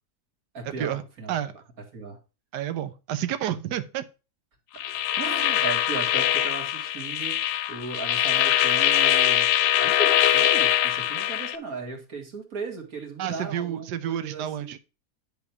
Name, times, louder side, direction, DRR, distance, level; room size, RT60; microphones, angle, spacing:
voice 1, 0.5-1.4 1.9-2.2 5.2-9.5 9.8-14.7, right 4 dB, 60° right, 2 dB, 2.5 m, -36 dB
voice 2, 2.5-4.0 13.2-14.8, right 11 dB, 90° right, 11 dB, 1.3 m, -30 dB
sound 1, 4.8-11.6, left 12 dB, 85° left, 1.2 m, -23 dB
10.5 x 3.5 x 5.9 m, 0.31 s
omnidirectional pair, 1.8 m